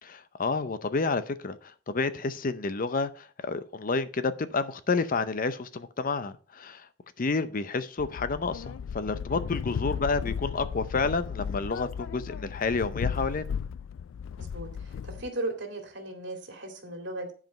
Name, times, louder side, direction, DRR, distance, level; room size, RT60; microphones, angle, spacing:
voice 1, 0.0-6.9 7.2-13.6, left 4 dB, 45° left, 0.6 m, -30 dB
sound 1, 8.0-15.3, left 7 dB, 85° left, 0.3 m, -35 dB
voice 2, 9.3-9.7 14.4-17.3, right 2 dB, 65° right, 2.3 m, -37 dB
10.5 x 5.0 x 5.1 m
head